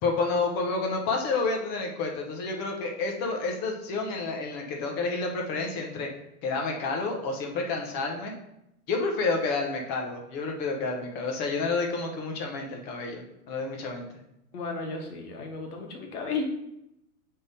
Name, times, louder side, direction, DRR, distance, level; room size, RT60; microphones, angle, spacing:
voice 1, 0.0-6.1 6.4-8.3 8.9-14.1, left 3 dB, 20° left, 1 dB, 0.7 m, -29 dB
voice 2, 14.5-16.4, left 4 dB, 80° left, 2 dB, 1.6 m, -34 dB
6.8 x 3.7 x 4.0 m, 0.84 s
supercardioid pair, 155°, 45 cm